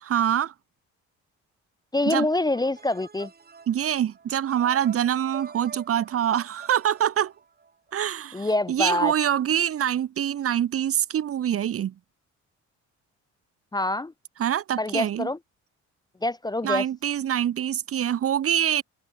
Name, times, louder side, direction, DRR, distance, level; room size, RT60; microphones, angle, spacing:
voice 1, 0.1-0.5 2.1-2.3 3.7-7.3 7.9-11.9 14.4-15.3 16.6-18.8, right 10 dB, 50° right, 0.8 m, -25 dB
voice 2, 1.9-3.3 8.3-9.1 13.7-14.1 14.8-15.4 16.2-16.8, left 2 dB, 15° left, 0.6 m, -25 dB
sound 1, 2.5-7.9, right 5 dB, 30° right, 2.0 m, -46 dB
cardioid pair, 90°, 30 cm